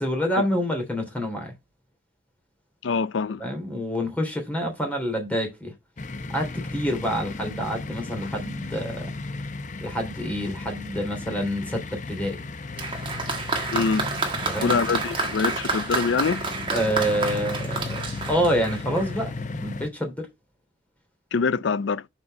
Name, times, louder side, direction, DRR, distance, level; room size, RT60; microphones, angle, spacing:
voice 1, 0.0-1.5 3.4-5.7 6.3-9.1 9.8-12.4 14.5-14.8 16.7-18.0 18.3-20.3, equal, 10° left, 3.0 m, -27 dB
voice 2, 2.8-3.4 13.7-14.1 14.6-16.4 21.3-22.0, left 5 dB, 80° left, 0.5 m, -24 dB
sound 1, 6.0-19.9, left 3 dB, 40° left, 0.7 m, -35 dB
Applause, 12.8-19.2, right 3 dB, 25° right, 1.7 m, -29 dB
6.2 x 5.2 x 5.1 m
head